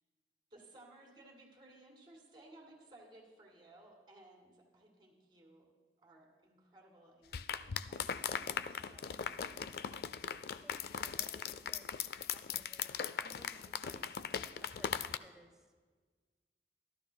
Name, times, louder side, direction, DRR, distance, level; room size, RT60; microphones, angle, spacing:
voice 1, 0.5-5.7 6.0-10.1, right 1 dB, 25° right, -1 dB, 2.0 m, -60 dB
sound 1, 7.3-15.2, left 7 dB, 55° left, 0.3 m, -39 dB
voice 2, 10.6-11.9 12.2-14.1 14.7-15.7, equal, 5° right, 4 dB, 0.7 m, -60 dB
14.0 x 12.5 x 2.2 m, 1.5 s
head